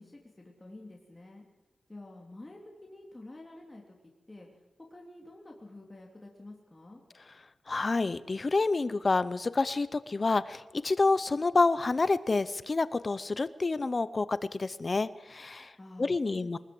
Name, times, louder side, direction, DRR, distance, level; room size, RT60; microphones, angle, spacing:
voice 1, 0.0-1.4 1.9-4.0 4.3-4.6 4.9-7.0 15.8-16.6, left 2 dB, 20° left, -1 dB, 2.9 m, -49 dB
voice 2, 7.7-15.7 16.0-16.6, left 3 dB, 35° left, 15 dB, 0.7 m, -28 dB
22.5 x 20.5 x 7.8 m, 1.1 s
wide cardioid pair, 110°, 0 cm